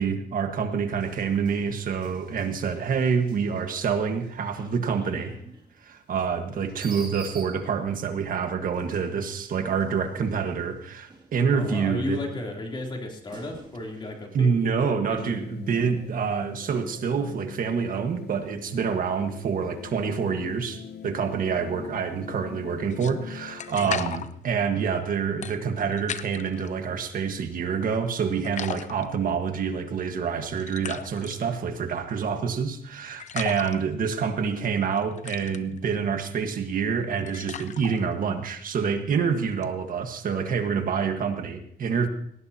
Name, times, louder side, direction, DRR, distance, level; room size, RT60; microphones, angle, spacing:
voice 1, 0.0-5.3 5.8-12.2 14.3-42.1, right 6 dB, 60° right, 6 dB, 1.6 m, -27 dB
sound 1, 0.9-8.1 8.7-11.8 12.2-14.3, right 3 dB, 30° right, 2.6 m, -49 dB
voice 2, 11.5-14.5 14.8-15.4 23.8-24.1, left 2 dB, 30° left, 0 dB, 3.3 m, -34 dB
sound 2, 15.2-24.0, left 7 dB, 85° left, 1.0 m, -44 dB
sound 3, 22.9-26.7 27.1-28.1 28.4-40.2, left 8 dB, 50° left, 0.7 m, -39 dB
18.5 x 17.5 x 2.9 m, 0.67 s
cardioid pair, 125°, 16 cm